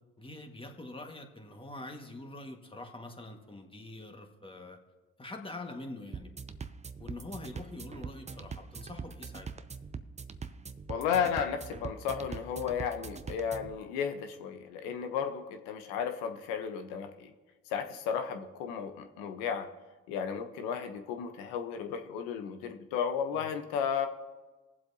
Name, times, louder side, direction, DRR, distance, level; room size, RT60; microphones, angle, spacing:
voice 1, 0.2-4.8 5.2-6.3 7.0-9.5 23.3-23.5, left 2 dB, 15° left, 3 dB, 1.7 m, -44 dB
sound 1, 6.1-13.8, right 5 dB, 20° right, 0.6 m, -43 dB
voice 2, 10.9-17.3 17.7-19.7 20.1-24.1, left 7 dB, 80° left, 7 dB, 1.0 m, -34 dB
20.0 x 7.6 x 2.8 m, 1.2 s
supercardioid pair, 65°, 32 cm